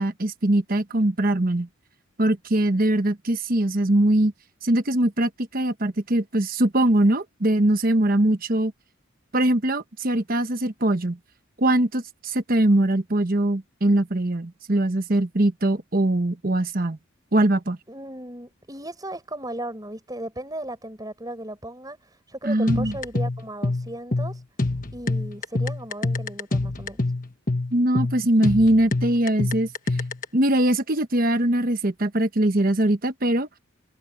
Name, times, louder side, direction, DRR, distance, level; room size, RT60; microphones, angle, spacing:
voice 1, 0.0-1.7 2.2-4.3 4.6-8.7 9.3-11.2 11.6-17.0 17.3-17.8 22.4-22.9 27.7-29.7 30.3-33.5, right 1 dB, 40° right, 1.1 m, -22 dB
voice 2, 17.9-24.4 24.9-27.0, right 1 dB, 20° right, 6.0 m, -36 dB
sound 1, 22.7-30.3, left 2 dB, 40° left, 1.4 m, -26 dB
head